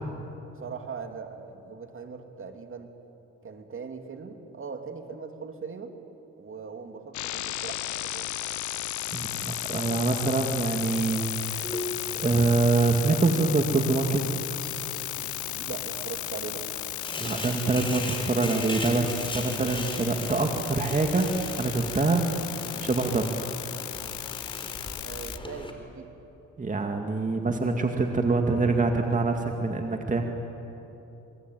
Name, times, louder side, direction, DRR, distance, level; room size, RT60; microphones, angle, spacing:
voice 1, 0.5-2.9 3.4-5.9 6.4-8.3 15.5-16.7 25.0-26.1, right 5 dB, 45° right, 5 dB, 2.8 m, -40 dB
sound 1, 7.1-25.4, left 14 dB, 70° left, 0.8 m, -35 dB
voice 2, 9.1-11.8 12.1-14.3 17.2-21.3 21.6-22.3 22.8-23.3 26.6-30.2, right 3 dB, 25° right, 3 dB, 2.1 m, -25 dB
sound 2, 11.6-25.7, left 2 dB, 15° left, 4.2 m, -40 dB
28.0 x 23.0 x 9.3 m, 3.0 s
cardioid pair, 90°, 30 cm